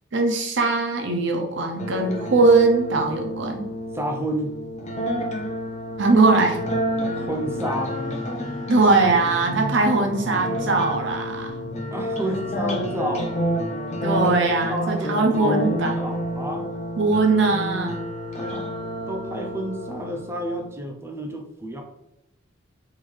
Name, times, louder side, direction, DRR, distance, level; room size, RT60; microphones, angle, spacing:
voice 1, 0.1-3.6 6.0-6.7 8.7-11.6 14.0-16.2 17.0-18.0, right 3 dB, 60° right, 2 dB, 0.7 m, -20 dB
sound 1, 1.8-20.7, equal, 35° left, 0.6 m, -29 dB
voice 2, 3.9-4.6 7.1-7.9 11.9-13.5 14.1-14.2 14.7-16.8 18.3-18.7 19.1-21.8, right 1 dB, 15° right, 3 dB, 0.5 m, -31 dB
sound 2, 6.5-13.2, equal, 85° left, 1.3 m, -37 dB
3.6 x 2.6 x 3.2 m, 0.89 s
head